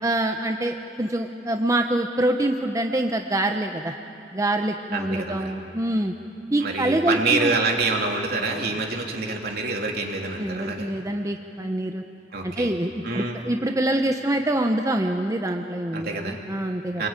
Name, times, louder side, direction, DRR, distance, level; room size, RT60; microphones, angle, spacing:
voice 1, 0.0-3.9 4.3-6.1 6.5-7.5 10.4-12.0 12.4-17.0, right 1 dB, 20° right, 4 dB, 0.8 m, -25 dB
voice 2, 4.9-5.5 6.6-10.9 12.3-12.7 13.0-13.4 15.9-16.4 17.0-17.1, right 3 dB, 60° right, 1 dB, 3.1 m, -26 dB
26.0 x 21.5 x 9.0 m, 2.7 s
head